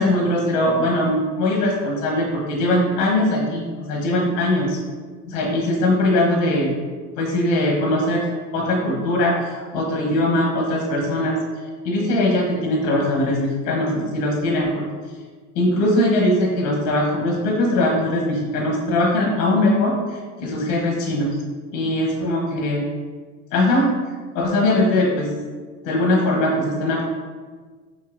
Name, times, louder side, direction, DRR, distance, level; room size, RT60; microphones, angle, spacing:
voice 1, 0.0-4.8 5.3-6.7 7.2-8.2 8.5-11.4 11.8-14.9 15.5-21.4 21.7-22.8 23.5-23.9 24.3-25.3 25.8-27.0, left 1 dB, 85° left, -2 dB, 1.1 m, -21 dB
6.5 x 2.7 x 2.5 m, 1.5 s
supercardioid pair, 115°, 34 cm